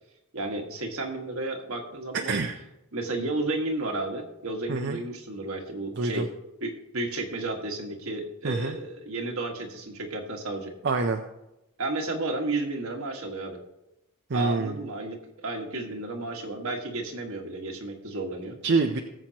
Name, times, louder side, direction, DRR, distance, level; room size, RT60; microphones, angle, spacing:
voice 1, 0.3-2.4 2.9-6.3 6.6-10.7 11.8-13.6 14.3-18.6, right 2 dB, 70° right, 2 dB, 1.7 m, -32 dB
voice 2, 2.1-2.6 4.7-5.0 6.0-6.3 8.4-8.8 10.8-11.2 14.3-14.8 18.6-19.0, right 3 dB, 55° right, 5 dB, 0.6 m, -26 dB
18.5 x 7.6 x 2.9 m, 0.92 s
head